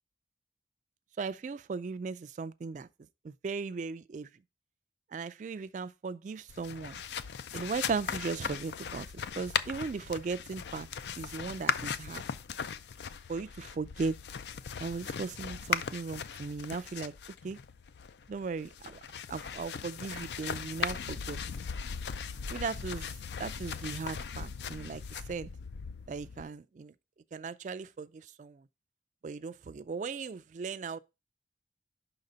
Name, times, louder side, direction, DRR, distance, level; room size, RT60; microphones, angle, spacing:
voice 1, 1.2-2.9 3.2-4.3 5.1-7.0 7.5-10.9 11.2-12.2 13.3-14.2 14.8-17.1 17.4-17.6 18.3-19.0 19.3-21.4 22.5-23.1 23.4-25.0 25.3-25.5 26.1-26.9 27.3-28.6 29.2-31.0, right 4 dB, 45° right, 0.3 m, -37 dB
sound 1, 6.5-26.4, left 7 dB, 70° left, 0.4 m, -38 dB
5.7 x 3.9 x 5.4 m
head